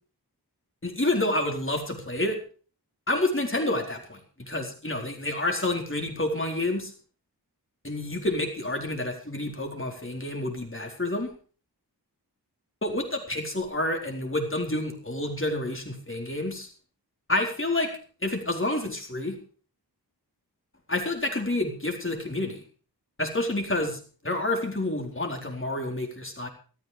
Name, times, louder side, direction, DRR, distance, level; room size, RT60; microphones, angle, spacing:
voice 1, 0.8-2.4 3.1-6.9 7.8-11.3 12.8-16.7 17.3-17.9 18.2-19.4 20.9-22.6 23.2-26.5, left 1 dB, 30° left, 2 dB, 4.2 m, -29 dB
14.5 x 13.5 x 5.1 m, 0.40 s
wide cardioid pair, 55°, 41 cm